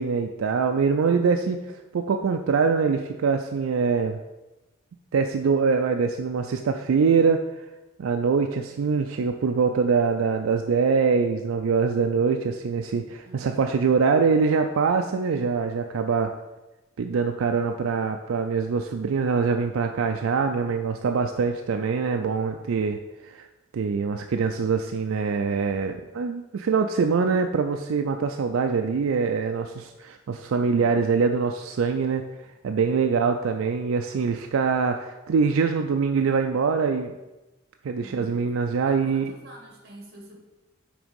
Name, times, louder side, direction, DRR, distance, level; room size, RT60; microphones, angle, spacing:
voice 1, 0.0-4.2 5.1-7.5 8.0-16.3 17.0-23.5 23.7-32.2 32.6-37.1 37.8-39.3, right 5 dB, 90° right, 5 dB, 0.4 m, -24 dB
voice 2, 13.2-13.7 38.0-38.5 38.8-40.4, right 1 dB, 50° right, 0 dB, 1.8 m, -47 dB
6.1 x 4.0 x 5.2 m, 1.1 s
head